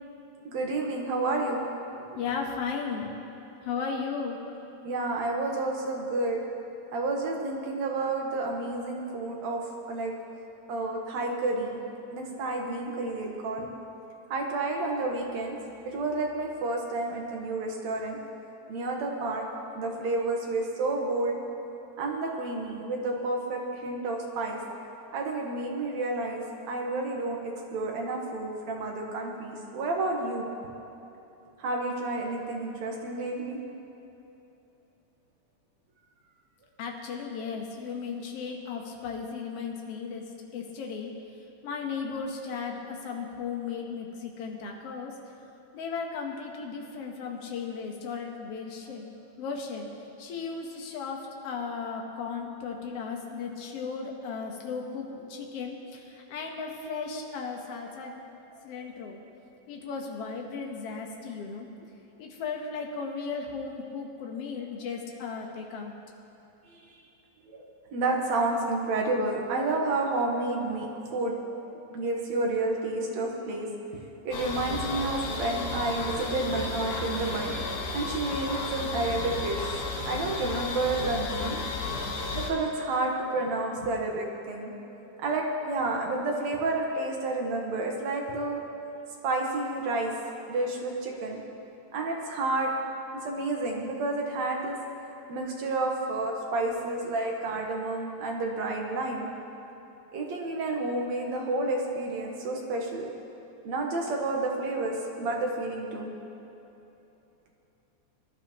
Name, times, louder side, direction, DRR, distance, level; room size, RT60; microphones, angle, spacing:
voice 1, 0.4-1.6 1.9-2.2 4.8-6.4 6.9-10.1 10.7-11.8 12.1-13.7 14.3-15.6 15.9-18.2 18.7-19.4 19.8-21.4 22.0-24.6 25.1-30.5 31.6-33.6 66.7-67.0 67.5-67.6 67.9-73.7 74.2-77.6 77.9-81.6 82.4-84.7 85.1-88.6 89.2-90.1 90.5-91.4 91.9-92.7 93.2-94.8 95.3-99.3 100.1-103.1 103.6-106.1, right 2 dB, 70° right, 0 dB, 2.6 m, -30 dB
voice 2, 2.2-3.1 3.6-4.4 36.8-40.2 40.5-41.1 41.6-45.1 45.7-49.1 49.4-49.9 50.2-58.2 58.6-59.2 59.7-61.7 62.2-66.0 82.1-82.2, left 5 dB, 60° left, 1 dB, 2.1 m, -35 dB
sound 1, 74.3-82.5, left 3 dB, 85° left, 2.8 m, -33 dB
21.0 x 11.5 x 3.1 m, 3.0 s
omnidirectional pair, 3.4 m